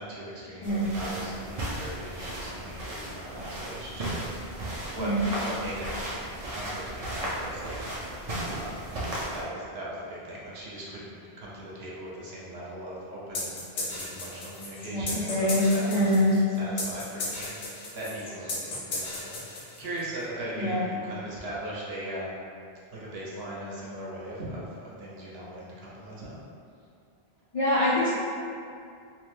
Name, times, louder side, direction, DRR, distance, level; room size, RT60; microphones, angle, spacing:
voice 1, 0.0-4.6 4.9-5.1 5.4-5.8 6.5-8.9 9.3-22.4 22.9-26.4, right 1 dB, 75° right, -6 dB, 0.9 m, -39 dB
sound 1, 0.6-9.4, right 1 dB, 45° right, 0.5 m, -35 dB
sound 2, 13.3-20.0, left 2 dB, 75° left, 0.9 m, -35 dB
voice 2, 14.9-16.4 20.6-20.8 27.5-28.1, left 1 dB, 50° left, -10 dB, 0.4 m, -24 dB
2.9 x 2.1 x 3.1 m, 2.4 s
omnidirectional pair, 1.1 m